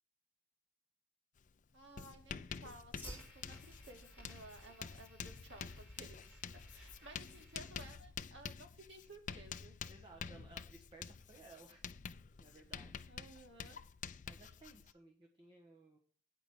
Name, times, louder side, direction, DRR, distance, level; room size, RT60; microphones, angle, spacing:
Writing, 1.4-1.5 1.8-14.9, left 6 dB, 45° left, 0.4 m, -49 dB
voice 1, 1.7-6.4 6.7-9.7 13.1-13.8, right 2 dB, 85° right, 3 dB, 2.0 m, -56 dB
Fire, 2.2-8.2, equal, 10° right, 3.7 m, -56 dB
voice 2, 6.8-7.1 9.9-11.8 12.4-13.0 14.3-16.0, right 3 dB, 25° right, 1 dB, 1.2 m, -59 dB
9.0 x 5.0 x 7.0 m, 0.43 s
head